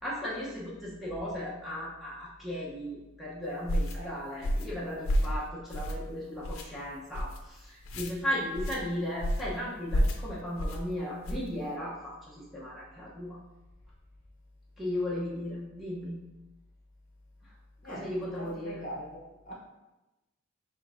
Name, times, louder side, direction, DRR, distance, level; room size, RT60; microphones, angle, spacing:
voice 1, 0.0-13.4 14.8-16.3 17.4-17.5 17.8-18.8, left 1 dB, ahead, -7 dB, 0.7 m, -36 dB
sound 1, 3.7-4.0 4.4-4.7 5.0-5.4 5.7-6.1 6.4-6.6 7.1-7.4 7.8-8.1 8.5-8.8 9.2-9.5 9.9-10.2 10.6-10.8 11.2-11.5, equal, 75° left, 0.5 m, -29 dB
voice 2, 17.8-19.5, equal, 40° left, -3 dB, 0.8 m, -43 dB
5.1 x 3.5 x 2.5 m, 1.0 s
head